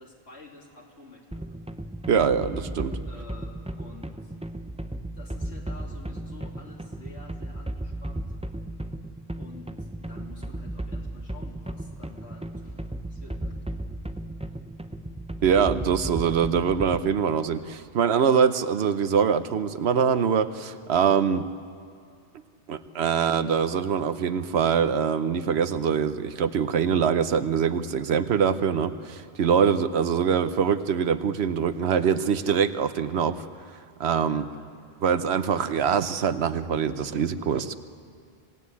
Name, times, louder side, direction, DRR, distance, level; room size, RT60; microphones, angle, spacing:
voice 1, 0.0-1.6 3.1-4.3 4.9-8.3 9.4-13.6 34.3-34.7, left 3 dB, 85° left, -1 dB, 3.4 m, -49 dB
sound 1, 1.3-17.2, right 1 dB, 5° right, 0.7 m, -35 dB
voice 2, 2.1-3.0 15.4-21.5 22.7-33.5 34.0-34.4 35.0-37.7, right 7 dB, 80° right, 12 dB, 1.1 m, -24 dB
26.5 x 17.0 x 8.4 m, 2.2 s
omnidirectional pair, 1.1 m